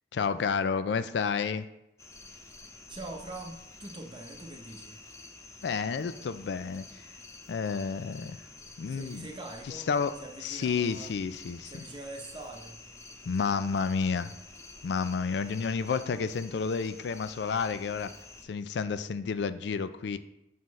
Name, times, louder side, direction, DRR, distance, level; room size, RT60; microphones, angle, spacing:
voice 1, 0.1-1.7 5.6-7.0 7.5-8.4 8.8-9.3 9.7-10.1 10.4-11.7 13.3-14.3 14.8-18.1 18.4-20.2, left 5 dB, 75° left, 0.4 m, -30 dB
sound 1, 2.0-18.4, left 3 dB, 15° left, 0.6 m, -49 dB
voice 2, 2.9-5.0 8.9-9.9 10.2-11.1 11.6-12.8, right 2 dB, 25° right, 0.7 m, -43 dB
7.4 x 5.7 x 3.1 m
head